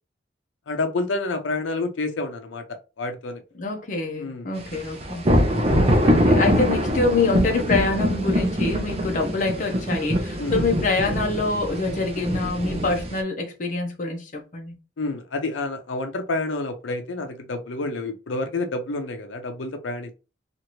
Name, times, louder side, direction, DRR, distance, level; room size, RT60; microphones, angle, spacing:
voice 1, 0.7-2.6 3.0-3.4 4.2-4.5 5.8-6.2 10.4-10.6 15.0-20.1, left 2 dB, 85° left, 0.5 m, -29 dB
voice 2, 3.6-5.3 6.0-14.7, left 3 dB, 45° left, 0.6 m, -25 dB
sound 1, 4.7-13.2, equal, 30° right, 0.6 m, -23 dB
2.9 x 2.5 x 2.9 m
head